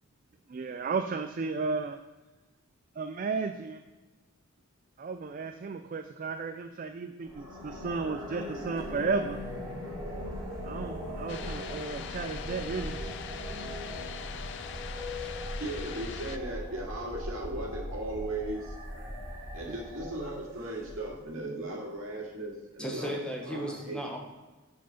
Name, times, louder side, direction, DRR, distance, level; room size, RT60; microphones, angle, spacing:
voice 1, 0.5-2.0 3.0-3.8 5.0-9.4 10.6-13.0 19.7-19.8, right 4 dB, 40° right, 7 dB, 0.3 m, -34 dB
sound 1, 7.2-21.3, equal, 20° right, 2.8 m, -39 dB
sound 2, 11.3-16.4, left 7 dB, 55° left, 0.4 m, -42 dB
voice 2, 14.1-15.3 22.8-24.2, equal, 5° left, 0 dB, 0.9 m, -38 dB
voice 3, 15.6-18.7 19.5-24.0, right 1 dB, 70° right, -2 dB, 2.1 m, -37 dB
7.3 x 4.6 x 5.7 m, 1.2 s
head